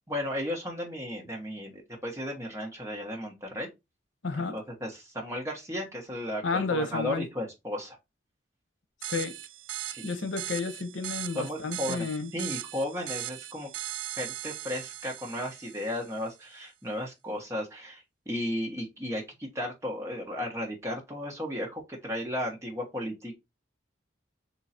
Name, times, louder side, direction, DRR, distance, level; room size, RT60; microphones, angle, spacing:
voice 1, 0.1-3.7 4.5-8.0 9.9-10.0 11.3-12.1 12.3-13.7 14.2-23.4, left 1 dB, 15° right, 1.2 m, -34 dB
voice 2, 4.2-4.6 6.4-7.3 9.0-9.4 10.0-12.3, left 3 dB, 85° left, 0.8 m, -31 dB
sound 1, 9.0-16.2, right 13 dB, 80° right, 0.3 m, -39 dB
3.9 x 2.9 x 4.2 m
head